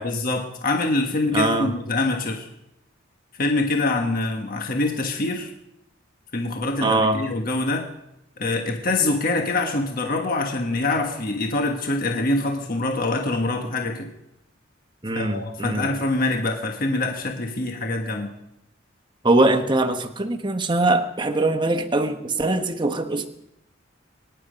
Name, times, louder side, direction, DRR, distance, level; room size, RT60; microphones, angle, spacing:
voice 1, 0.0-2.5 3.4-5.5 6.3-7.8 8.4-14.1 15.1-18.3, left 2 dB, 45° left, 2 dB, 1.4 m, -24 dB
voice 2, 1.3-1.7 6.8-7.2 15.0-15.9 19.2-23.3, right 2 dB, 25° right, 7 dB, 1.1 m, -22 dB
23.5 x 10.5 x 5.2 m, 0.88 s
head